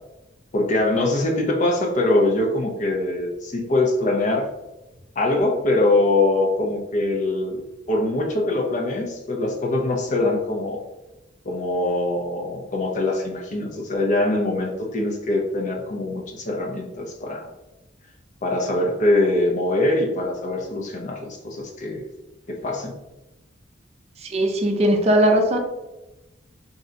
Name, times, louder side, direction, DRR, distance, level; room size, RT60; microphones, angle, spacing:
voice 1, 0.5-4.5 5.2-7.6 7.9-10.8 11.4-17.5 18.4-22.0 22.5-23.0, left 2 dB, 40° left, 1 dB, 0.5 m, -23 dB
voice 2, 24.2-25.6, right 1 dB, 35° right, 3 dB, 0.5 m, -19 dB
2.6 x 2.2 x 3.7 m, 1.0 s
head